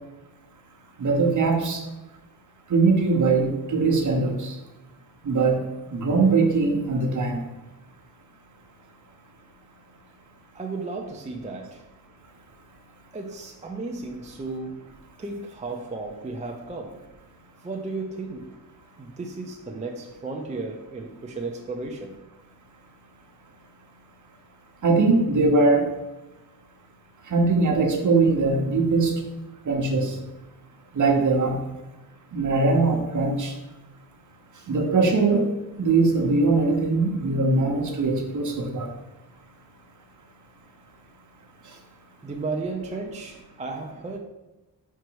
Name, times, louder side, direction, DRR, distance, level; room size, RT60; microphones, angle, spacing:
voice 1, 1.0-1.8 2.7-4.5 5.2-5.6 5.9-7.4 24.8-25.9 27.3-29.1 29.7-30.1 30.9-31.6 32.3-33.5 34.7-35.4 35.8-38.9, right 3 dB, 45° right, 2 dB, 1.0 m, -21 dB
voice 2, 10.5-11.8 13.1-14.9 15.2-17.0 17.6-18.6 19.0-22.1 42.2-44.2, right 3 dB, 20° right, 2 dB, 0.4 m, -34 dB
5.1 x 4.6 x 4.6 m, 1.0 s
wide cardioid pair, 180°, 40 cm